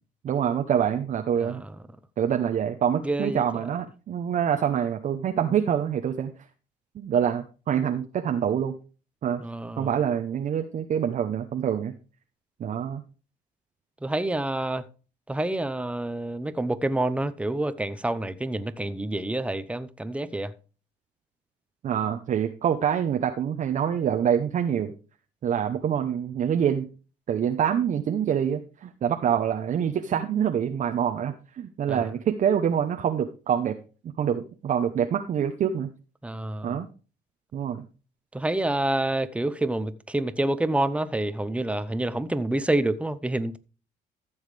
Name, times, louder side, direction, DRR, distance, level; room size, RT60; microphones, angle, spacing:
voice 1, 0.2-1.6 2.2-6.3 6.9-8.7 9.2-9.4 9.8-11.9 12.6-13.0 21.8-24.9 25.4-26.9 27.3-33.8 34.2-35.9 36.6-36.9 37.5-37.8, right 8 dB, 45° right, 0.8 m, -26 dB
voice 2, 3.0-3.4 9.4-9.9 14.0-14.8 15.3-20.5 31.9-32.1 36.2-36.8 38.3-43.6, right 1 dB, 5° right, 0.8 m, -28 dB
14.0 x 7.2 x 3.3 m
cardioid pair, 110°, 17 cm